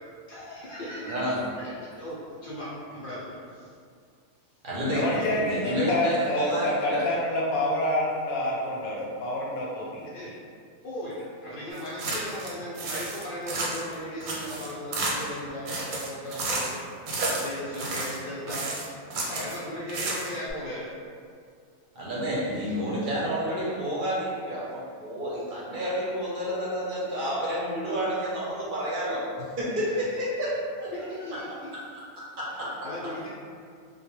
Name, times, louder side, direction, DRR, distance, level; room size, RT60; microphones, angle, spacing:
voice 1, 0.3-1.2 1.6-1.7 2.0-3.7 10.1-10.3 10.8-16.8 17.2-18.7 19.1-20.9 29.9-30.0 30.9-31.8 32.8-33.3, equal, 70° left, -8 dB, 0.5 m, -37 dB
voice 2, 1.1-1.4 4.6-7.0 21.9-29.2 29.6-30.5 30.8-30.9 31.3-31.4 32.4-32.7, equal, 55° right, -7 dB, 0.6 m, -29 dB
voice 3, 4.9-10.1, left 1 dB, 90° left, -4 dB, 1.1 m, -28 dB
sound 1, 11.8-12.5 12.7-13.9 14.2-15.4 15.6-16.8 17.1-18.2 18.5-19.6 19.9-20.5, right 2 dB, 90° right, 1.0 m, -31 dB
2.2 x 2.2 x 3.0 m, 2.2 s
omnidirectional pair, 1.4 m